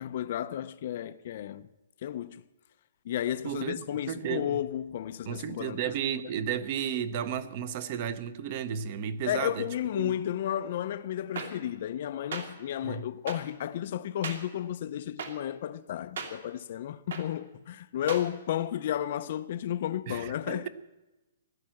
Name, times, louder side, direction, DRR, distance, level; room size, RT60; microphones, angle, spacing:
voice 1, 0.0-1.7 2.0-2.4 3.0-5.9 9.3-20.7, left 11 dB, 35° left, 0.5 m, -33 dB
voice 2, 4.1-4.6 5.3-9.6 9.9-10.1 12.8-13.1 20.1-20.7, right 8 dB, 30° right, 0.8 m, -33 dB
sound 1, 11.4-11.5 12.3-12.4 13.3-13.4 14.2-14.4 15.2-15.3 16.2-16.3 17.1-17.2 18.1-18.2, right 6 dB, 55° right, 2.5 m, -35 dB
15.5 x 11.5 x 7.7 m
hypercardioid pair, 180°, 0 cm